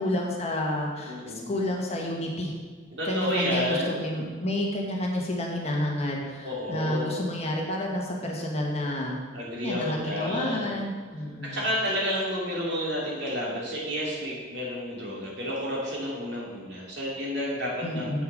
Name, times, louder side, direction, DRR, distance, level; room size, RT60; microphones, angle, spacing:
voice 1, 0.0-2.6 3.0-9.2 9.6-11.6 17.8-18.2, left 1 dB, 35° left, -1 dB, 1.3 m, -30 dB
voice 2, 1.1-1.5 2.9-3.9 6.4-7.2 9.3-10.8 11.4-18.2, equal, 60° right, -5 dB, 2.7 m, -30 dB
7.7 x 6.8 x 5.1 m, 1.5 s
head